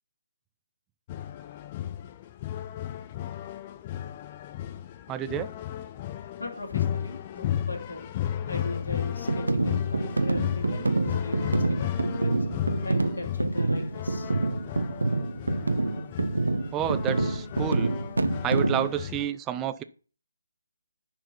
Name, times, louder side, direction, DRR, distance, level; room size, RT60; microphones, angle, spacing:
sound 1, 1.1-19.3, left 11 dB, 25° left, 0.7 m, -34 dB
voice 1, 5.1-5.5 16.7-17.9 18.4-19.8, right 11 dB, 15° right, 0.5 m, -30 dB
voice 2, 6.4-8.1 8.5-14.3, left 2 dB, 65° left, 3.0 m, -39 dB
sound 2, 9.3-18.9, right 2 dB, 75° right, 1.1 m, -27 dB
10.5 x 4.7 x 5.6 m
figure-of-eight pair, 145°, 0 cm